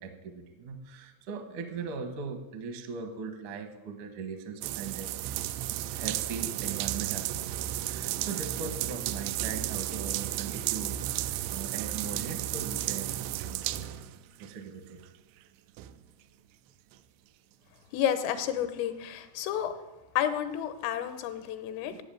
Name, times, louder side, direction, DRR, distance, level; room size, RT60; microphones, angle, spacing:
voice 1, 0.0-5.1 5.9-13.7 14.4-15.0 21.8-22.0, right 5 dB, 75° right, 6 dB, 1.8 m, -39 dB
sound 1, 4.6-14.5 15.0-15.1 15.8-15.9, right 13 dB, 90° right, 2.6 m, -33 dB
voice 2, 17.9-19.8 20.2-22.0, left 10 dB, 85° left, 10 dB, 3.6 m, -30 dB
13.0 x 7.5 x 9.0 m, 1.1 s
omnidirectional pair, 5.7 m